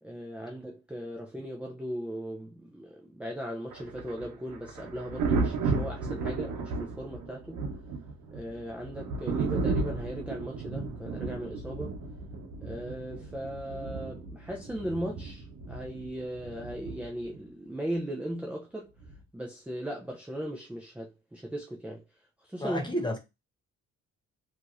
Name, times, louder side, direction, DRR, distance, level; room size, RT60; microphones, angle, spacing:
voice 1, 0.0-7.6 8.3-12.0 12.6-18.9 19.3-22.0 22.4-23.0, equal, 5° right, 0.5 m, -38 dB
Thunder, 3.7-17.4 19.0-19.2, right 4 dB, 80° right, 1.0 m, -34 dB
voice 2, 22.6-23.2, equal, 15° left, 0.9 m, -31 dB
2.9 x 2.8 x 2.5 m
cardioid pair, 90°, 30 cm